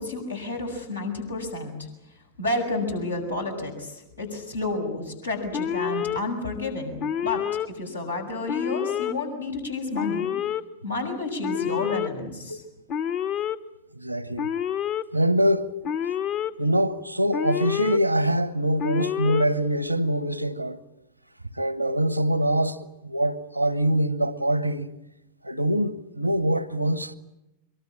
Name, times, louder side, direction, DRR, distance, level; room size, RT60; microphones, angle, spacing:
voice 1, 0.0-1.7 2.4-10.3 10.8-12.6, left 2 dB, 85° left, 7.0 m, -30 dB
Alarm, 5.5-6.2 7.0-7.7 8.5-9.1 9.9-10.6 11.4-12.1 12.9-13.6 14.4-15.0 15.8-16.5 17.3-18.0 18.8-19.5, left 9 dB, 40° left, 1.3 m, -28 dB
voice 2, 13.9-14.5 15.1-15.7 16.6-20.8 21.5-24.9 25.4-27.2, right 1 dB, 90° right, 1.2 m, -24 dB
24.0 x 23.0 x 8.7 m
figure-of-eight pair, 90°, 0 cm